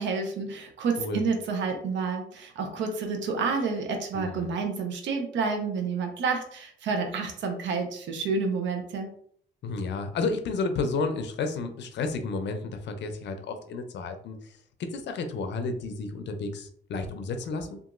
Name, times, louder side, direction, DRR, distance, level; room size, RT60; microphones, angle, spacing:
voice 1, 0.0-9.1, right 4 dB, 70° right, 4 dB, 0.6 m, -29 dB
voice 2, 4.1-4.5 9.6-14.5 14.8-17.8, left 3 dB, 65° left, 7 dB, 0.5 m, -31 dB
2.8 x 2.4 x 2.5 m, 0.63 s
cardioid pair, 90°, 20 cm